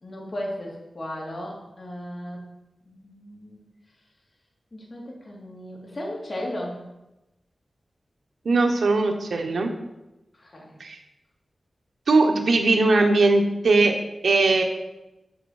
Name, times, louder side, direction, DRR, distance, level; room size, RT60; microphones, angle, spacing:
voice 1, 0.0-2.4 2.8-3.6 4.7-6.8 10.4-10.8, left 1 dB, 40° left, -2 dB, 2.7 m, -35 dB
voice 2, 8.4-9.7 10.8-11.0 12.1-13.9 14.2-14.6, right 3 dB, 85° right, 4 dB, 1.2 m, -19 dB
7.0 x 6.9 x 6.5 m, 0.95 s
wide cardioid pair, 105°, 0 cm